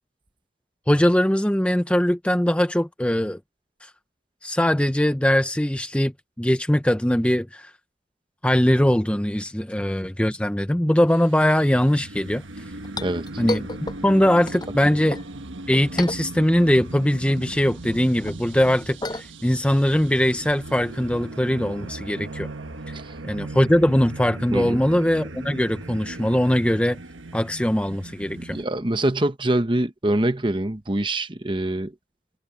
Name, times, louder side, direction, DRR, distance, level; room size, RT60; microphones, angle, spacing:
voice 1, 0.9-3.4 3.8-3.9 4.4-7.7 8.4-12.6 13.4-13.7 14.0-15.2 15.7-22.5 23.2-27.0 27.3-28.6, equal, 5° left, 0.6 m, -21 dB
sound 1, 11.1-28.6, right 2 dB, 85° right, 1.4 m, -38 dB
Chink clink, 12.4-15.3 15.7-16.8 17.1-21.2, left 1 dB, 20° left, 7.7 m, -34 dB
voice 2, 24.5-24.8 28.4-31.9, right 1 dB, 25° right, 1.0 m, -24 dB
head